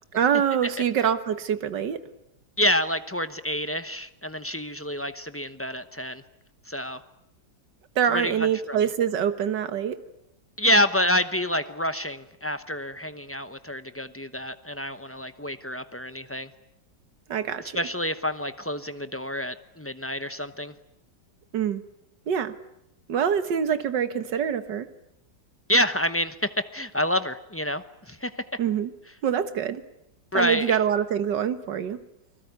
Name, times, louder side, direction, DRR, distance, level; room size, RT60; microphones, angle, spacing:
voice 1, 0.1-2.0 8.0-10.0 17.3-17.8 21.5-21.8 22.3-22.5 23.1-24.9 28.6-28.9 29.2-29.8 30.3-32.0, right 8 dB, 70° right, 11 dB, 2.0 m, -25 dB
voice 2, 2.6-6.2 6.7-7.0 8.1-8.8 10.6-16.5 17.7-20.7 25.7-28.4 30.3-30.8, equal, 15° left, 11 dB, 0.5 m, -28 dB
29.5 x 20.5 x 9.4 m, 0.82 s
omnidirectional pair, 1.9 m